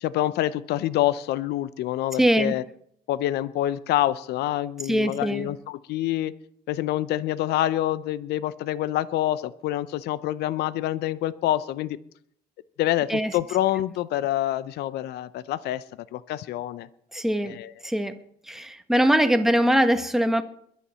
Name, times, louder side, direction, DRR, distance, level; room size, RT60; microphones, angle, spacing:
voice 1, 0.0-2.6 3.1-6.3 6.7-12.0 12.8-15.8 16.1-16.9 17.4-17.7, left 13 dB, 75° left, 16 dB, 0.7 m, -26 dB
voice 2, 2.2-2.5 4.9-5.5 13.1-13.3 17.1-17.6 17.8-18.1 18.5-20.4, equal, ahead, 7 dB, 1.2 m, -22 dB
22.0 x 7.3 x 5.7 m, 0.68 s
cardioid pair, 110°, 17 cm